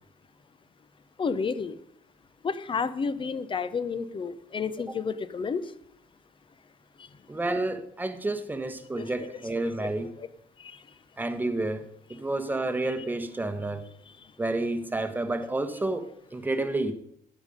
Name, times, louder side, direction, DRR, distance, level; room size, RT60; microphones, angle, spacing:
voice 1, 1.2-1.8 2.4-5.6 9.0-9.1 9.8-9.9 10.2-10.3 10.6-10.8, left 5 dB, 30° left, 0.7 m, -31 dB
voice 2, 7.3-10.1 11.2-11.8 12.1-13.8 14.4-16.9, right 2 dB, 10° right, 1.1 m, -30 dB
10.5 x 8.3 x 5.2 m
cardioid pair, 110°, 17 cm